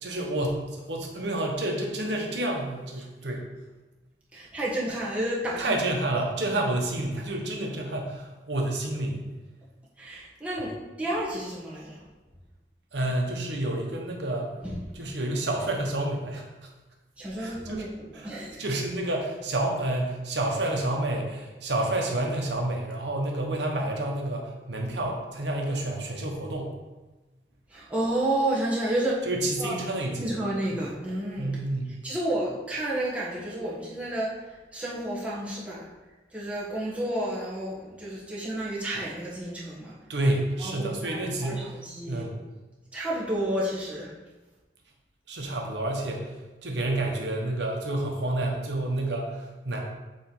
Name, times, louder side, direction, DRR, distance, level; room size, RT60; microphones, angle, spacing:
voice 1, 0.0-3.5 5.6-9.2 12.9-14.5 14.9-16.4 17.4-17.8 18.1-26.7 29.3-30.3 30.7-30.8 31.4-31.9 40.1-41.7 42.1-42.4 45.3-46.3 46.6-49.8, right 1 dB, 75° right, 1 dB, 1.0 m, -29 dB
voice 2, 4.3-5.7 10.0-12.0 14.6-14.8 17.2-18.6 27.7-29.2 29.6-29.7 30.2-31.5 32.0-35.9 36.3-39.9 40.6-42.2 42.9-44.1, right 1 dB, 5° right, -7 dB, 1.4 m, -31 dB
7.4 x 3.2 x 5.3 m, 1.2 s
head